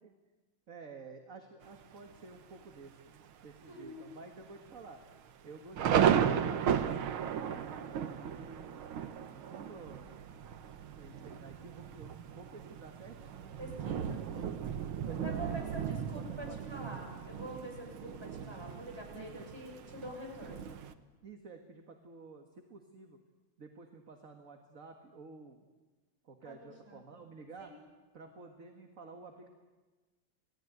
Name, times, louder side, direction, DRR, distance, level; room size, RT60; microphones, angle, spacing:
voice 1, 0.7-5.0 5.4-8.8 9.3-10.1 10.9-13.6 14.3-14.6 15.1-15.7 16.1-16.8 19.1-19.5 21.2-23.2 23.6-25.6 26.2-27.7 28.1-29.5, right 4 dB, 40° right, 4 dB, 2.0 m, -51 dB
Thunder, 1.6-2.2 2.7-2.8 3.1-3.5 3.9-4.0 4.7-20.9, right 8 dB, 85° right, 2.0 m, -35 dB
voice 2, 3.7-4.1 13.6-14.2 15.1-20.7 26.4-27.0 27.6-27.7, equal, 10° right, 0 dB, 6.9 m, -46 dB
28.5 x 18.5 x 9.4 m, 1.3 s
omnidirectional pair, 2.2 m